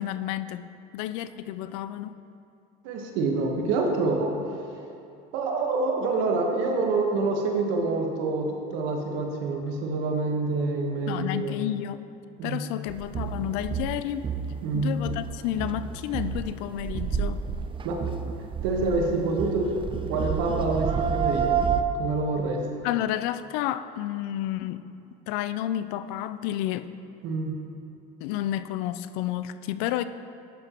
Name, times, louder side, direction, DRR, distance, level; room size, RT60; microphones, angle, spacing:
voice 1, 0.0-2.1 11.1-12.1 12.4-14.3 14.7-17.4 22.8-24.8 25.3-26.9 28.2-30.0, left 12 dB, 75° left, 13 dB, 0.4 m, -31 dB
voice 2, 2.8-4.3 5.3-11.6 12.4-12.6 14.6-14.9 17.8-18.0 18.6-19.8 20.1-21.5 22.0-22.6 27.2-27.5, right 3 dB, 75° right, 2 dB, 1.3 m, -26 dB
Langtang Nepal mountain chants, 12.9-21.8, right 7 dB, 25° right, 0.5 m, -30 dB
10.5 x 6.8 x 3.0 m, 2.6 s
supercardioid pair, 85°, 20 cm